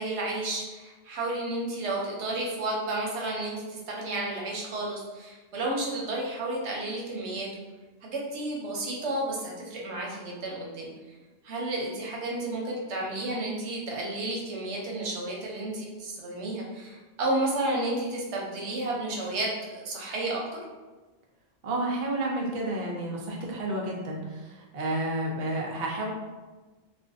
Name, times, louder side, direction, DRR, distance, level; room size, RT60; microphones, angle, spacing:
voice 1, 0.0-7.5 8.0-10.9 11.4-20.6, right 2 dB, 80° right, -2 dB, 0.9 m, -32 dB
voice 2, 21.6-26.1, right 1 dB, 55° right, -2 dB, 0.5 m, -31 dB
2.4 x 2.2 x 2.5 m, 1.2 s
omnidirectional pair, 1.2 m